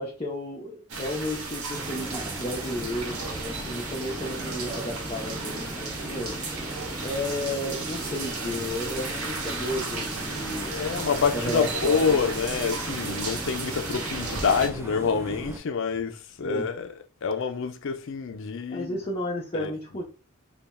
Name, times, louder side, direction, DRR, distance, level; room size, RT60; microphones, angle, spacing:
voice 1, 0.0-6.4 7.0-10.8 11.3-12.3 16.4-16.7 18.7-20.0, left 1 dB, 25° left, 0.7 m, -33 dB
sound 1, 0.9-14.7, right 3 dB, 85° right, 1.0 m, -34 dB
sound 2, 1.7-15.6, right 1 dB, 10° right, 0.4 m, -38 dB
voice 2, 10.7-16.9 17.2-19.0 19.5-19.7, left 5 dB, 60° left, 0.4 m, -27 dB
3.4 x 2.2 x 4.0 m
head